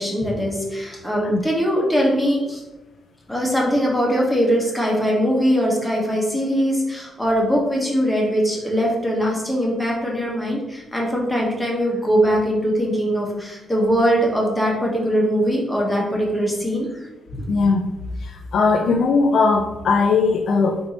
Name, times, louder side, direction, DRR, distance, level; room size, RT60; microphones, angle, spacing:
voice 1, 0.0-2.6 3.3-16.9 17.3-17.5, equal, 5° left, -3 dB, 1.1 m, -21 dB
voice 2, 17.5-20.8, left 4 dB, 65° left, 2 dB, 0.3 m, -19 dB
4.3 x 2.7 x 4.2 m, 1.0 s
cardioid pair, 130°, 0 cm